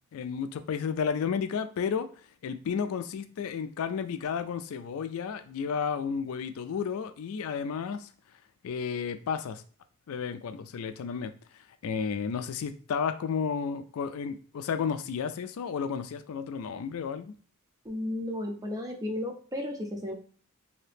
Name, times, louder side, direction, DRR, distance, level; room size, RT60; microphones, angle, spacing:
voice 1, 0.1-2.1 2.4-8.1 8.6-9.6 10.1-11.3 11.8-17.3, left 6 dB, 70° left, 10 dB, 0.3 m, -32 dB
voice 2, 17.8-20.1, left 1 dB, 15° right, 3 dB, 0.6 m, -34 dB
2.8 x 2.7 x 3.4 m, 0.44 s
head